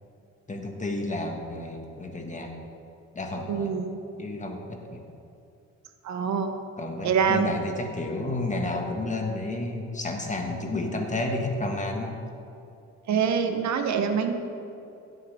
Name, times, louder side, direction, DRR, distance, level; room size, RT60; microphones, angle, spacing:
voice 1, 0.5-2.5 3.1-3.7 4.2-5.0 6.8-12.2, left 2 dB, 25° left, 2 dB, 1.6 m, -31 dB
voice 2, 3.5-4.0 6.0-6.6 7.0-7.5 13.1-14.3, right 6 dB, 65° right, 7 dB, 1.0 m, -25 dB
16.5 x 8.0 x 3.5 m, 2.7 s
cardioid pair, 90°, 30 cm